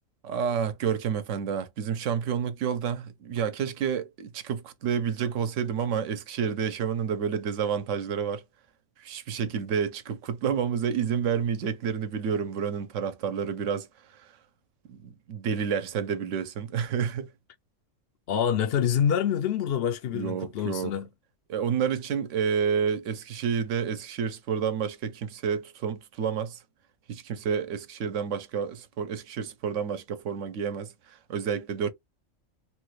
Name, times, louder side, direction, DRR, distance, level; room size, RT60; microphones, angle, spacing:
voice 1, 0.2-8.4 9.0-14.3 14.9-17.3 20.1-20.9 21.5-26.6 27.1-31.9, right 7 dB, 70° right, 1.0 m, -29 dB
voice 2, 18.3-21.1, left 8 dB, 60° left, 0.7 m, -26 dB
3.0 x 2.3 x 3.1 m
omnidirectional pair, 1.3 m